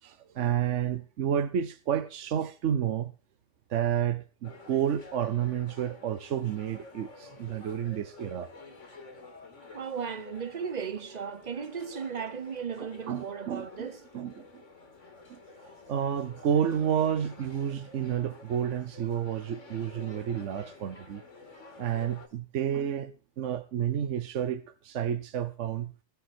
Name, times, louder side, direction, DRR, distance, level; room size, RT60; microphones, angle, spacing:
voice 1, 0.0-3.1 3.7-8.5 12.8-13.9 14.1-14.6 15.3-15.4 15.9-21.2 21.8-26.0, right 9 dB, 80° right, 1.1 m, -30 dB
sound 1, 4.4-22.3, left 3 dB, 80° left, 2.4 m, -50 dB
voice 2, 9.7-14.1, right 6 dB, 40° right, 0.8 m, -36 dB
17.0 x 7.1 x 6.0 m
omnidirectional pair, 1.2 m